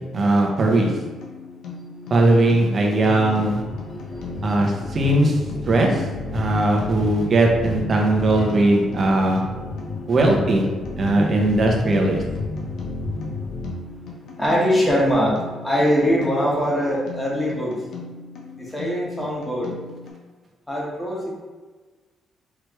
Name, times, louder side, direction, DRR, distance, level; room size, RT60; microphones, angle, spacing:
voice 1, 0.1-0.9 2.1-3.6 4.4-5.4 5.7-6.1 6.3-9.4 10.1-10.6 11.0-12.2, right 2 dB, 45° right, 0 dB, 0.9 m, -19 dB
sound 1, 0.6-20.1, left 4 dB, 80° left, 0.9 m, -39 dB
voice 2, 1.9-2.4 3.1-3.2 3.9-4.9 5.2-5.3 9.8-10.1 12.5-17.7 18.6-19.7 20.7-21.3, equal, 10° left, -5 dB, 1.5 m, -24 dB
sound 2, 3.0-13.7, left 3 dB, 60° left, 0.6 m, -31 dB
4.7 x 3.2 x 3.1 m, 1.3 s
cardioid pair, 90°, 0 cm